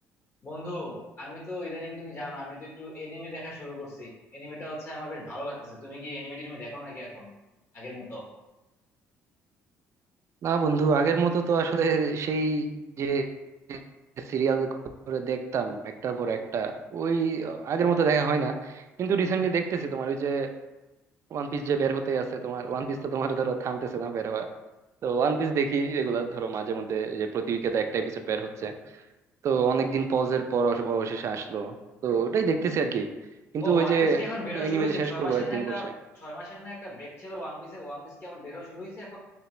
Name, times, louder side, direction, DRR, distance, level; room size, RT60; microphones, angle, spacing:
voice 1, 0.4-7.3 7.7-8.3 33.6-35.9 36.1-39.2, left 1 dB, 45° left, -3 dB, 1.1 m, -37 dB
voice 2, 10.4-13.3 13.7-13.8 14.2-14.7 15.1-20.5 21.3-24.5 25.0-28.7 29.4-31.7 32.0-33.1 33.5-34.2 34.5-35.9, right 5 dB, 55° right, 6 dB, 0.4 m, -27 dB
3.3 x 2.8 x 3.1 m, 1.0 s
supercardioid pair, 75°, 6 cm